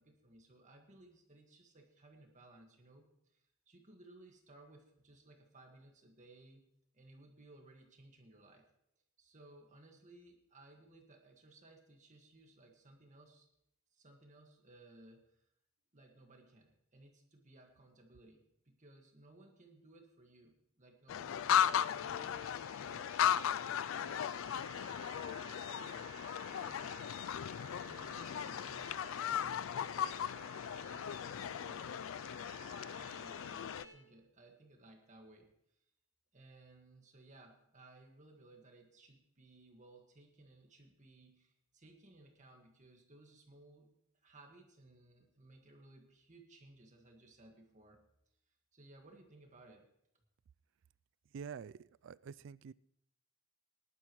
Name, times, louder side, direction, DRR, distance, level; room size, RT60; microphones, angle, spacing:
voice 1, 0.0-6.6 6.9-8.7 9.2-13.5 13.9-15.5 15.9-24.4 24.8-26.1 26.4-27.2 27.7-32.1 33.0-35.8 36.3-43.9 44.2-48.0 48.5-49.9, right 2 dB, 40° right, 3 dB, 1.7 m, -61 dB
sound 1, 21.1-33.8, left 9 dB, 80° left, 0.3 m, -37 dB
sound 2, 21.3-33.9, right 4 dB, 20° right, 3.1 m, -56 dB
voice 2, 51.3-52.7, right 6 dB, 65° right, 19 dB, 0.3 m, -47 dB
19.5 x 11.0 x 3.1 m, 0.77 s
head